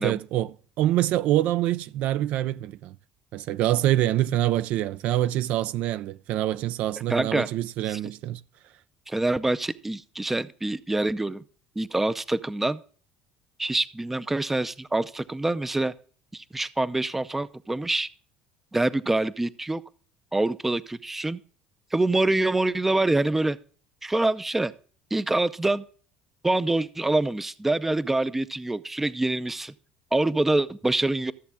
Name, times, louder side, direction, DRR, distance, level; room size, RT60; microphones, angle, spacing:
voice 1, 0.0-3.0 3.3-8.4, right 13 dB, 65° right, 0.4 m, -25 dB
voice 2, 7.1-7.5 7.9-8.0 9.1-11.4 11.8-12.8 13.6-15.9 16.3-18.1 18.7-19.8 20.3-21.4 21.9-23.6 24.0-24.7 25.1-25.8 26.4-29.7 30.1-31.3, right 2 dB, 10° right, 0.5 m, -25 dB
14.0 x 7.2 x 3.4 m
cardioid pair, 120°, 3 cm